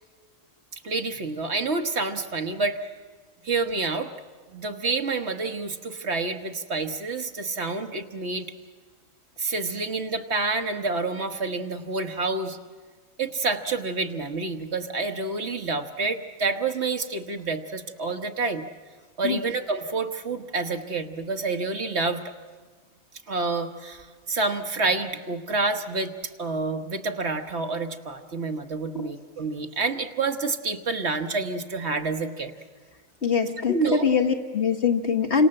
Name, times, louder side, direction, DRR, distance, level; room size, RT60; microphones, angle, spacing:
voice 1, 0.7-2.8 3.4-4.1 4.5-8.5 9.4-12.6 13.2-18.6 19.2-22.2 23.3-26.1 26.4-32.5 33.7-34.1, right 3 dB, 55° right, 6 dB, 1.5 m, -28 dB
voice 2, 33.2-35.5, left 5 dB, 55° left, 4 dB, 2.1 m, -23 dB
29.5 x 26.0 x 7.7 m, 1.5 s
omnidirectional pair, 1.3 m